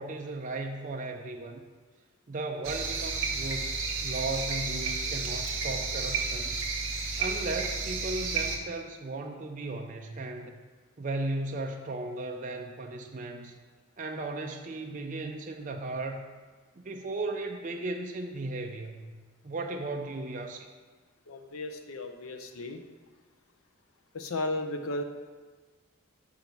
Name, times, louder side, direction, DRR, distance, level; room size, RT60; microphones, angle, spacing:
voice 1, 0.0-1.6 2.3-6.6 7.2-10.6 11.0-13.6 14.0-16.2 16.8-19.1 19.4-20.7, right 2 dB, 35° right, 3 dB, 0.4 m, -36 dB
sound 1, 2.6-8.6, right 4 dB, 65° right, 0.9 m, -32 dB
voice 2, 21.3-22.8 24.1-25.0, left 2 dB, 80° left, 6 dB, 0.6 m, -34 dB
5.6 x 4.6 x 5.2 m, 1.4 s
head